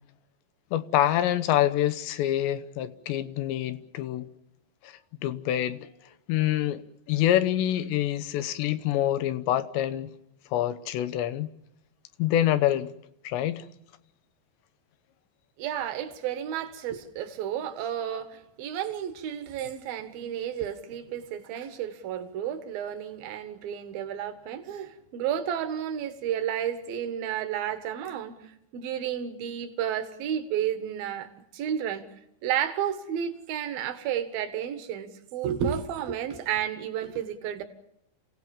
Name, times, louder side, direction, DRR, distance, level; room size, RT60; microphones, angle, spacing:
voice 1, 0.7-4.3 4.8-5.8 6.3-6.8 7.1-10.1 10.5-11.5 12.2-12.9 13.2-13.7, left 12 dB, 80° left, 3.2 m, -26 dB
voice 2, 15.6-32.0 32.4-37.6, right 9 dB, 60° right, 3.1 m, -32 dB
28.5 x 17.5 x 7.1 m
omnidirectional pair, 5.1 m